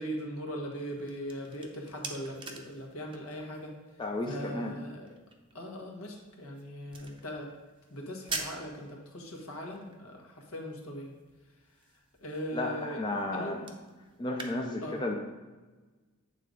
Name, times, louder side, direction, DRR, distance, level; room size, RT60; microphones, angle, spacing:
voice 1, 0.0-3.7 4.2-5.2 5.5-7.5 7.9-11.1 12.2-13.0 13.3-13.6 14.8-15.0, equal, 70° left, 0 dB, 1.4 m, -39 dB
sound 1, 0.8-14.5, right 3 dB, 25° right, 0.7 m, -47 dB
voice 2, 4.0-4.7 12.5-13.7 14.2-15.1, left 2 dB, 20° left, 1 dB, 0.6 m, -33 dB
8.6 x 3.9 x 5.1 m, 1.3 s
head